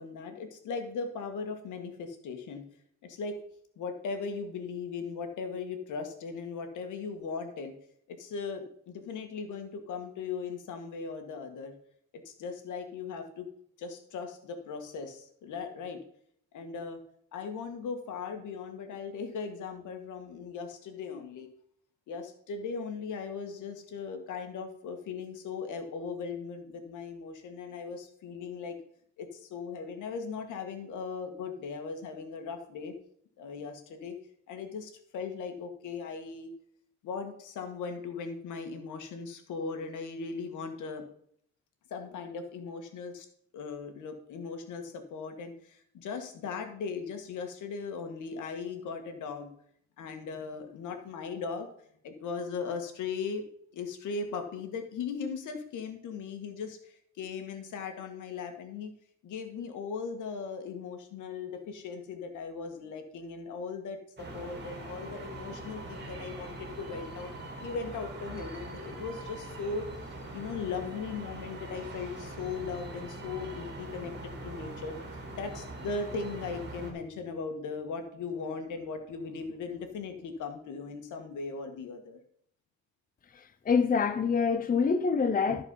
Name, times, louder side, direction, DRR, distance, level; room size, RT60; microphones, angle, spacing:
voice 1, 0.0-2.6 3.0-3.4 3.8-7.7 8.1-11.7 12.3-13.5 13.8-16.0 16.5-17.0 17.3-21.5 22.1-28.8 29.2-32.9 33.4-34.2 34.5-36.5 37.0-41.1 41.9-43.3 43.5-49.5 50.0-51.7 52.0-53.4 53.7-58.9 59.2-67.3 67.6-75.0 75.3-82.2, left 5 dB, 80° left, 1.9 m, -38 dB
sound 1, 64.2-76.9, right 2 dB, 35° right, 2.7 m, -42 dB
voice 2, 83.3-85.6, left 5 dB, 30° left, 0.7 m, -26 dB
13.5 x 4.8 x 5.6 m
cardioid pair, 90°, 30 cm